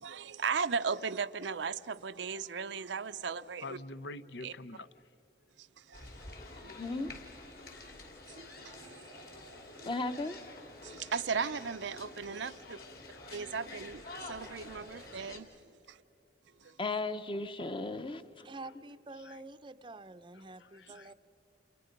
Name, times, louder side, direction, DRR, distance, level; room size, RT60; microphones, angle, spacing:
voice 1, 0.0-3.8 4.4-4.5 5.6-6.1 6.5-6.7 8.3-9.9 10.8-12.8 13.3-16.0 16.6-16.7 18.5-18.6, right 5 dB, 85° right, 0.6 m, -37 dB
voice 2, 3.6-4.9 12.6-13.2 13.6-13.7 19.2-19.4 20.4-21.1, left 2 dB, 75° left, 0.7 m, -46 dB
sound 1, 5.9-15.4, left 2 dB, 55° left, 3.1 m, -49 dB
voice 3, 6.6-7.1 9.8-10.4 16.8-18.4, left 2 dB, 30° left, 0.9 m, -36 dB
voice 4, 18.4-21.1, right 2 dB, 25° right, 0.6 m, -48 dB
29.5 x 29.0 x 5.2 m
head